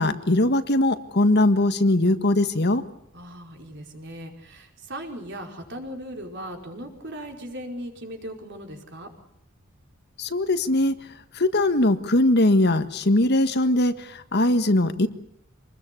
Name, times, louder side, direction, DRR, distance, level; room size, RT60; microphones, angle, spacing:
voice 1, 0.0-2.8 10.2-11.0 11.3-15.1, left 1 dB, 50° left, 10 dB, 1.6 m, -21 dB
voice 2, 3.1-9.1, equal, 55° right, 3 dB, 5.1 m, -38 dB
26.5 x 20.5 x 8.5 m, 0.74 s
head